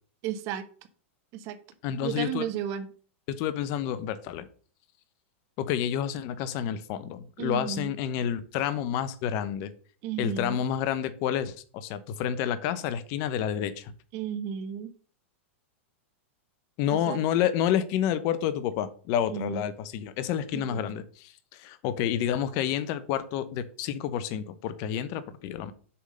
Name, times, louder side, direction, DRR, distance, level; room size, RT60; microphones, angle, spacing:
voice 1, 0.2-0.6 1.3-1.6 2.0-2.9 7.4-7.9 10.0-10.6 14.1-14.9 16.9-17.2 19.3-19.6 20.5-20.8, right 9 dB, 45° right, 1.1 m, -33 dB
voice 2, 1.8-2.5 3.3-4.5 5.6-9.7 10.2-13.9 16.8-25.7, left 10 dB, 45° left, 0.8 m, -29 dB
6.9 x 3.7 x 6.4 m
hypercardioid pair, 125°, 7 cm